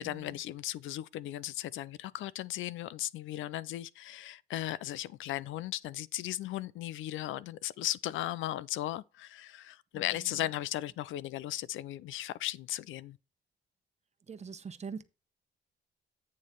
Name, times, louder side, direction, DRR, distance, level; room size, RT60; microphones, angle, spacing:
voice 1, 0.0-13.2, left 14 dB, 80° left, 0.5 m, -36 dB
voice 2, 14.3-15.0, right 5 dB, 35° right, 1.0 m, -42 dB
9.4 x 3.2 x 6.6 m
cardioid pair, 90°, 20 cm